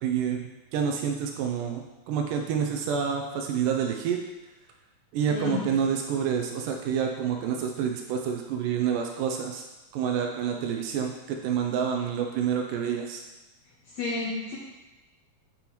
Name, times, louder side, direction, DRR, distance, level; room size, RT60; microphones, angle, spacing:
voice 1, 0.0-0.4 0.7-4.2 5.1-9.6 9.9-13.2, right 7 dB, 80° right, 3 dB, 2.0 m, -28 dB
voice 2, 5.3-5.7 13.8-14.6, left 3 dB, 75° left, -4 dB, 1.7 m, -31 dB
6.8 x 5.3 x 3.0 m, 1.1 s
omnidirectional pair, 4.1 m